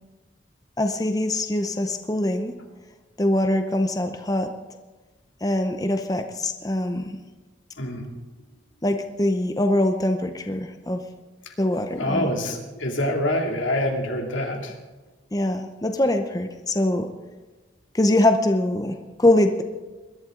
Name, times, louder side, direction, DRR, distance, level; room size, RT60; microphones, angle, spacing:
voice 1, 0.8-2.5 3.2-4.5 5.4-7.2 8.8-11.0 11.6-12.3 15.3-17.1 17.9-19.6, left 1 dB, 20° left, 6 dB, 0.7 m, -23 dB
voice 2, 7.8-8.1 11.4-11.5 12.0-14.8, left 1 dB, 90° left, 1 dB, 2.6 m, -26 dB
21.0 x 12.0 x 3.8 m, 1.2 s
head